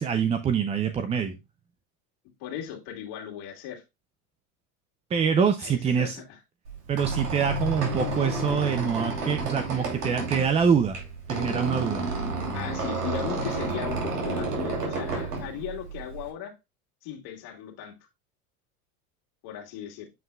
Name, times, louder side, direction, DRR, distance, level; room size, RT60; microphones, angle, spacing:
voice 1, 0.0-1.4 5.1-6.2 6.9-11.0 11.3-12.0, right 7 dB, 15° right, 0.3 m, -25 dB
voice 2, 2.4-3.8 5.6-6.2 12.5-16.5 17.0-18.0 19.4-20.1, left 10 dB, 55° left, 2.2 m, -37 dB
Squeak, 6.7-16.3, right 2 dB, 90° right, 2.8 m, -31 dB
8.0 x 5.3 x 2.2 m
hypercardioid pair, 100°, 44 cm